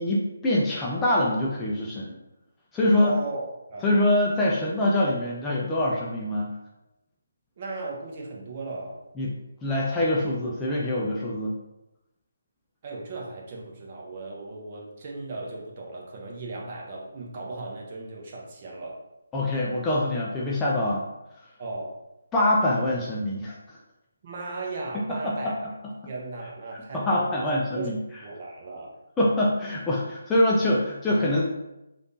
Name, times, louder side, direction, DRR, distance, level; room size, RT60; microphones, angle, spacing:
voice 1, 0.0-2.2 2.7-3.1 3.8-6.5 9.2-9.3 9.6-11.6 19.3-21.0 22.3-23.8 24.9-25.5 26.7-28.0 29.2-31.4, left 1 dB, 10° left, -5 dB, 0.4 m, -24 dB
voice 2, 3.0-4.0 7.6-9.0 12.8-19.0 21.6-21.9 24.2-25.5 26.1-27.4 27.7-27.9 28.2-29.0, right 3 dB, 35° right, -2 dB, 0.7 m, -36 dB
3.4 x 2.5 x 2.6 m, 0.92 s
figure-of-eight pair, 150°, 0 cm